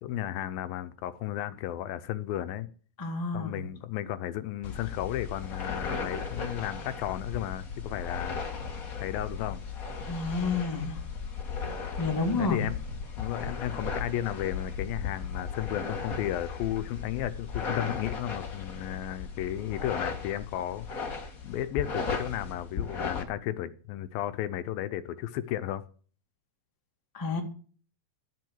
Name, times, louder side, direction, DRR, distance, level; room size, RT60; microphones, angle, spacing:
voice 1, 0.0-2.7 3.3-8.4 9.0-9.6 12.4-12.8 13.2-20.9 21.4-25.8, left 12 dB, 80° left, 2.4 m, -34 dB
voice 2, 3.0-3.6 10.0-11.0 12.0-12.6 27.1-27.4, left 4 dB, 10° left, 0.9 m, -30 dB
sound 1, 4.6-23.2, left 5 dB, 55° left, 0.9 m, -36 dB
12.0 x 7.6 x 8.0 m
omnidirectional pair, 4.3 m